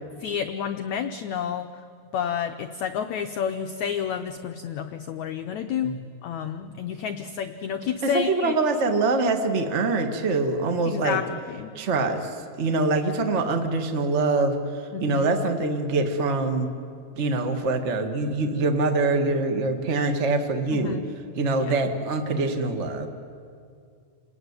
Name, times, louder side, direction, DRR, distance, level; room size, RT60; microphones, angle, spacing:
voice 1, 0.2-1.7 2.1-5.9 6.2-8.6 10.8-11.7 14.9-15.3 20.7-21.1 21.6-21.7, left 8 dB, 90° left, 7 dB, 1.6 m, -30 dB
voice 2, 8.0-11.2 11.7-14.6 15.0-16.7 17.2-21.0 21.4-23.1, right 3 dB, 65° right, 5 dB, 0.6 m, -24 dB
29.0 x 19.5 x 9.6 m, 2.3 s
omnidirectional pair, 4.5 m